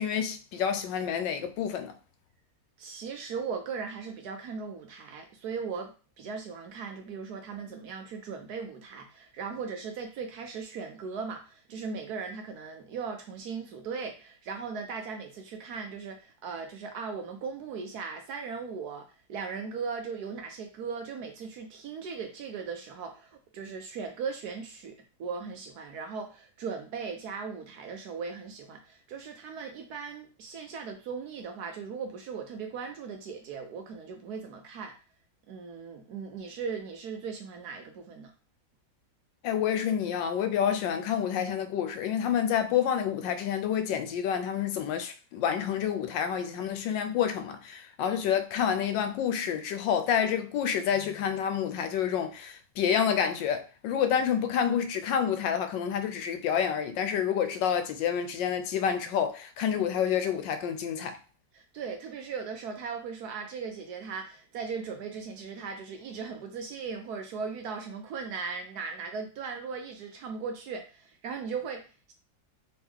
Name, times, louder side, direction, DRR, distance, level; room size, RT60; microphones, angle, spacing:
voice 1, 0.0-1.9 39.4-61.2, left 8 dB, 80° left, 1.2 m, -28 dB
voice 2, 2.8-35.0 35.5-38.3 61.5-72.1, right 5 dB, 65° right, 1.1 m, -38 dB
3.4 x 3.1 x 3.6 m
omnidirectional pair, 2.0 m